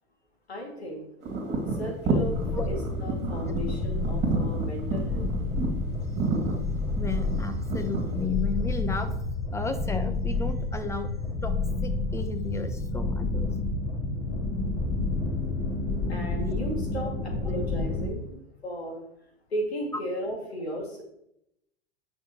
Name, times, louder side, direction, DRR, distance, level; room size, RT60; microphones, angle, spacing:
voice 1, 0.5-1.1 1.7-2.4 2.7-5.3 16.1-19.0 19.5-21.0, equal, 85° left, 1 dB, 2.5 m, -35 dB
sound 1, 1.2-8.2, right 4 dB, 35° right, 2.3 m, -30 dB
sound 2, 2.2-18.1, left 2 dB, 50° left, 3.1 m, -30 dB
voice 2, 7.0-9.1 9.5-11.1 11.4-13.5 17.5-17.6, left 4 dB, 10° left, 8 dB, 1.0 m, -34 dB
9.9 x 6.0 x 3.1 m, 0.77 s
hypercardioid pair, 95°, 31 cm